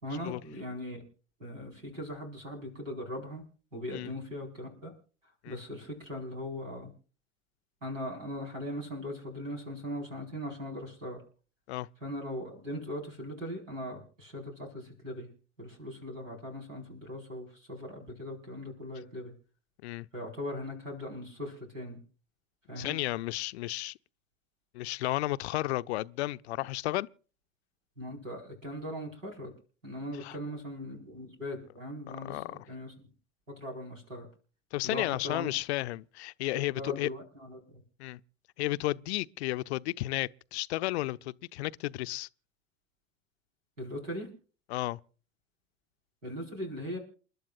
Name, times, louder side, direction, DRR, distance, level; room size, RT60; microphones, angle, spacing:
voice 1, 0.0-1.0 1.4-3.4 3.7-4.9 5.5-6.9 7.8-11.2 12.0-15.3 15.6-19.3 20.1-22.0 22.7-23.0 28.0-29.5 29.8-33.1 33.6-34.3 34.8-35.5 36.5-37.6 43.8-44.3 46.2-47.0, left 1 dB, 85° right, 4.9 m, -39 dB
voice 2, 22.8-23.9 24.7-27.1 30.2-30.4 32.2-32.6 34.7-37.1 38.0-38.2 38.6-42.3 44.7-45.0, left 18 dB, 60° left, 0.5 m, -33 dB
29.0 x 12.0 x 2.5 m
figure-of-eight pair, 80°, 37 cm